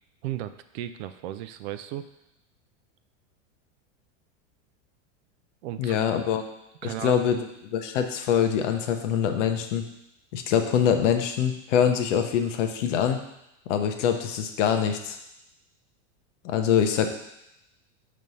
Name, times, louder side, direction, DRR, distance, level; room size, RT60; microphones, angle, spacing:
voice 1, 0.2-2.1 5.6-6.0 6.8-7.4, right 12 dB, 60° right, 11 dB, 0.4 m, -35 dB
voice 2, 5.8-6.4 6.8-7.4 7.7-9.8 10.3-13.2 13.7-15.2 16.4-17.1, left 8 dB, 70° left, 6 dB, 0.9 m, -24 dB
5.2 x 3.2 x 5.5 m, 0.84 s
supercardioid pair, 155°, 38 cm